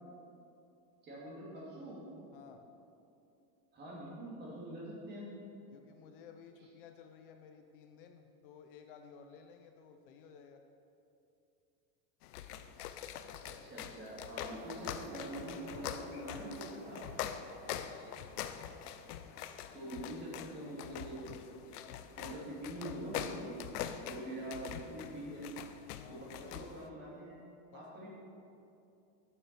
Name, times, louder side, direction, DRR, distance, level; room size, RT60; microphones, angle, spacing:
voice 1, 1.0-2.1 3.7-5.3 13.4-17.1 19.7-21.5 22.2-23.6 24.0-25.5 26.1-27.4 27.7-28.1, right 1 dB, 20° right, -5 dB, 2.5 m, -44 dB
voice 2, 2.3-2.7 5.7-10.6 17.6-18.6 25.9-26.6 27.7-27.9, left 7 dB, 40° left, 6 dB, 0.5 m, -55 dB
sound 1, 12.2-26.9, left 10 dB, 75° left, 0.7 m, -44 dB
sound 2, 14.4-19.9, right 5 dB, 35° right, 0.6 m, -56 dB
8.3 x 7.3 x 6.8 m, 2.7 s
supercardioid pair, 175°, 46 cm